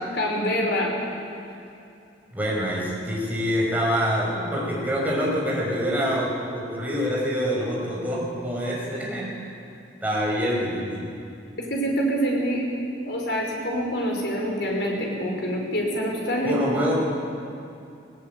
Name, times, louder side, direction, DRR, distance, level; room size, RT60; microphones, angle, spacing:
voice 1, 0.1-0.9 11.6-12.7 13.1-16.6, equal, 65° left, 0 dB, 5.3 m, -26 dB
voice 2, 2.3-9.5 10.0-11.1 16.4-16.9, equal, 10° right, -4 dB, 5.8 m, -26 dB
19.0 x 18.5 x 9.4 m, 2.6 s
head